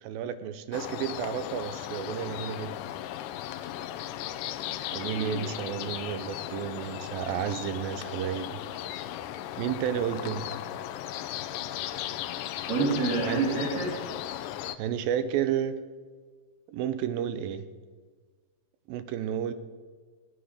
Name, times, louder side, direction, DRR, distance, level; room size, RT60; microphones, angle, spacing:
voice 1, 0.0-2.8 4.9-8.6 9.6-10.6 13.3-13.5 14.8-15.8 16.7-17.7 18.9-19.5, right 9 dB, 85° right, 12 dB, 2.5 m, -31 dB
sound 1, 0.7-14.8, left 12 dB, 80° left, 2.0 m, -36 dB
voice 2, 5.1-5.4 12.7-13.9, right 3 dB, 65° right, -4 dB, 4.1 m, -28 dB
17.0 x 10.5 x 6.5 m, 1.5 s
omnidirectional pair, 4.2 m